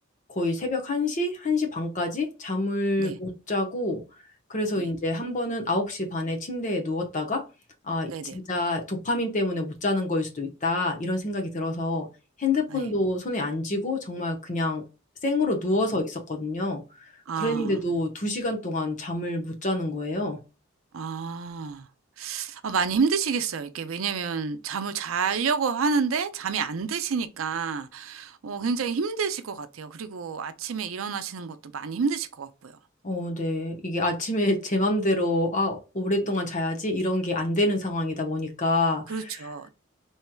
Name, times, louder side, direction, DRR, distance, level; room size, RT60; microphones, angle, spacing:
voice 1, 0.3-4.0 4.5-7.4 7.9-12.1 12.4-14.8 15.2-16.8 17.4-20.4 33.0-39.0, left 2 dB, 40° left, 1.0 m, -27 dB
voice 2, 8.1-8.4 12.7-12.9 17.3-17.8 20.9-21.9 22.2-32.7 39.1-39.7, right 5 dB, 80° right, 0.5 m, -29 dB
4.4 x 3.1 x 2.2 m
head